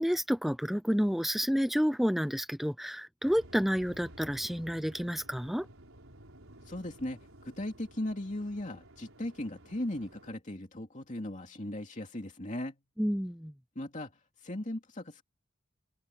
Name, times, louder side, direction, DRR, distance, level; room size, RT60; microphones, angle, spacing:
voice 1, 0.0-5.7 13.0-13.5, equal, ahead, 0.4 m, -30 dB
Waves surf, 3.2-10.4, right 1 dB, 75° right, 4.8 m, -54 dB
voice 2, 6.6-12.8 13.7-15.2, left 1 dB, 35° left, 2.7 m, -38 dB
head